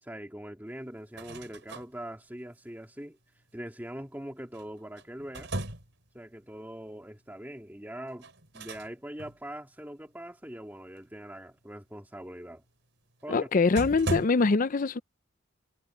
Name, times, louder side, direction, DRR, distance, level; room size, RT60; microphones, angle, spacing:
voice 1, 0.0-3.2 3.5-5.5 6.1-8.3 8.5-12.6 13.2-13.5, right 1 dB, 10° right, 2.0 m, -42 dB
sound 1, 1.0-1.9 4.5-6.1 8.2-8.9 9.2-9.4 13.2-13.3 13.8-14.3, right 1 dB, 70° right, 5.2 m, -36 dB
voice 2, 13.3-15.0, left 4 dB, 45° left, 0.5 m, -24 dB
head